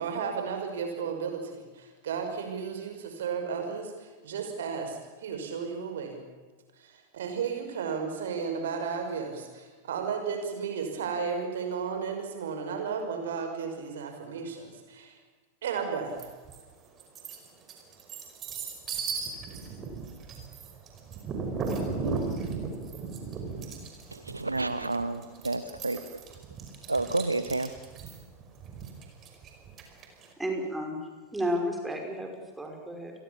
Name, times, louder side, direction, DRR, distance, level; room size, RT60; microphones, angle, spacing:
voice 1, 0.0-6.2 6.8-15.2 15.6-16.3, right 6 dB, 60° right, 5 dB, 5.8 m, -34 dB
sound 1, 16.2-16.6 17.0-30.3, right 4 dB, 30° right, 5.3 m, -36 dB
voice 2, 22.0-22.5 24.1-26.0 26.9-27.7, right 2 dB, 80° right, 12 dB, 1.0 m, -30 dB
voice 3, 30.4-31.0 31.3-33.1, equal, 5° right, 3 dB, 5.8 m, -32 dB
29.0 x 22.0 x 7.3 m, 1.3 s
figure-of-eight pair, 90°, 0 cm